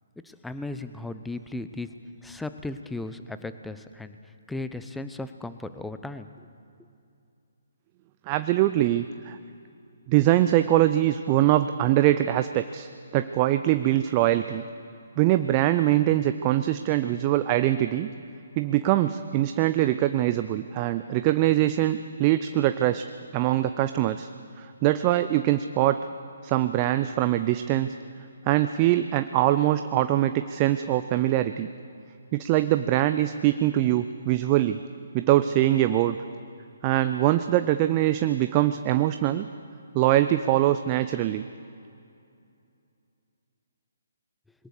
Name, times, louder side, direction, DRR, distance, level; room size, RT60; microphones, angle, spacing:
voice 1, 0.2-1.9 2.2-6.5, left 2 dB, 5° left, 10 dB, 0.8 m, -36 dB
voice 2, 8.3-9.4 10.1-12.9 13.1-14.6 15.2-18.1 18.6-23.0 23.3-24.3 24.6-26.0 26.4-27.9 28.4-31.7 32.3-34.8 35.1-36.2 36.8-39.5 39.9-41.5, right 14 dB, 30° right, 10 dB, 0.6 m, -23 dB
22.0 x 18.0 x 6.7 m, 2.5 s
figure-of-eight pair, 135°, 0 cm